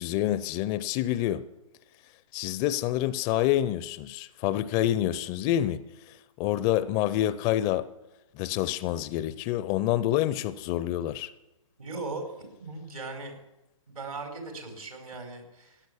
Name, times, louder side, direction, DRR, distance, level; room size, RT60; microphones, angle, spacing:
voice 1, 0.0-1.5 2.3-7.9 8.3-11.3, left 13 dB, 20° left, 0.4 m, -27 dB
voice 2, 11.8-12.2 12.5-13.4 13.9-15.8, right 3 dB, 85° right, 5.1 m, -38 dB
15.5 x 10.0 x 8.3 m
figure-of-eight pair, 130°, 18 cm